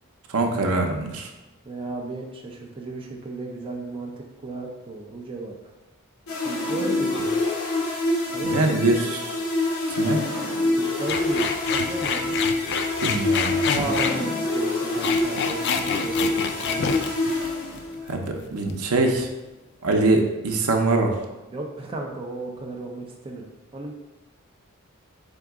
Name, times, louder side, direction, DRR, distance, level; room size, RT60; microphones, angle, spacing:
voice 1, 0.3-1.3 8.4-9.4 9.9-10.2 13.0-13.8 18.1-19.3 19.8-21.1, right 2 dB, 80° right, 3 dB, 0.6 m, -23 dB
voice 2, 1.7-4.1 4.4-5.5 6.4-7.3 8.3-9.0 10.7-11.4 11.8-12.4 13.7-17.0 21.5-23.9, right 2 dB, 25° right, 0 dB, 0.5 m, -34 dB
sound 1, 6.3-18.1, left 2 dB, 70° left, 0.9 m, -26 dB
sound 2, 11.1-14.2 14.8-18.1 18.4-18.8, left 6 dB, 50° left, 0.3 m, -27 dB
3.9 x 3.6 x 3.5 m, 1.1 s
head